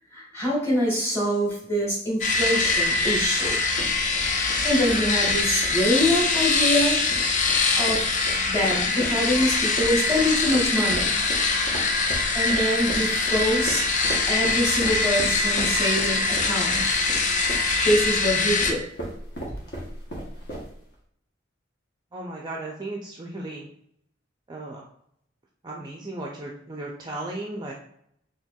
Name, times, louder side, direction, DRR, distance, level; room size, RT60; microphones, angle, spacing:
voice 1, 0.1-3.6 4.6-7.1 7.7-8.1 8.5-11.2 12.3-13.9 14.3-17.0 17.8-18.8, equal, 15° left, -5 dB, 1.4 m, -25 dB
sound 1, 2.2-18.7, left 3 dB, 40° left, 0.5 m, -23 dB
sound 2, 2.6-20.9, right 1 dB, 60° left, 1.0 m, -37 dB
voice 2, 22.1-23.7 24.5-24.8 25.6-27.7, right 2 dB, 20° right, -1 dB, 0.4 m, -35 dB
4.2 x 2.8 x 2.3 m, 0.68 s
head